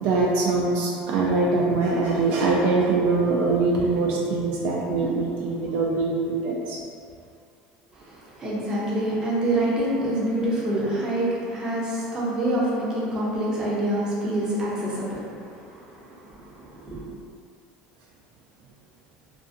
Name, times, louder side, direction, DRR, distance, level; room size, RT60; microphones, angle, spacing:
voice 1, 0.0-6.8, right 3 dB, 65° right, -3 dB, 0.3 m, -23 dB
voice 2, 7.9-17.0, right 1 dB, 20° right, -6 dB, 0.6 m, -27 dB
2.5 x 2.5 x 2.6 m, 2.3 s
cardioid pair, 150°, 3 cm